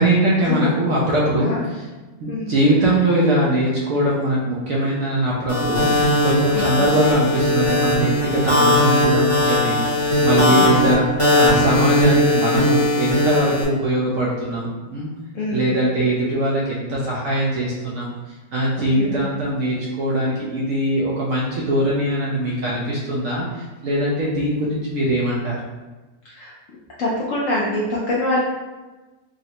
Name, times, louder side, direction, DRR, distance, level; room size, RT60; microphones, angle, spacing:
voice 1, 0.0-1.9 2.2-15.1 15.5-18.1 18.5-25.6, right 1 dB, 70° right, -5 dB, 0.8 m, -21 dB
sound 1, 5.5-13.6, left 1 dB, 25° left, 0.8 m, -19 dB
voice 2, 10.3-10.7 15.3-15.7 19.0-19.2 26.2-26.5 27.0-28.4, left 2 dB, 70° left, -6 dB, 0.7 m, -24 dB
3.8 x 2.1 x 2.8 m, 1.2 s
omnidirectional pair, 1.8 m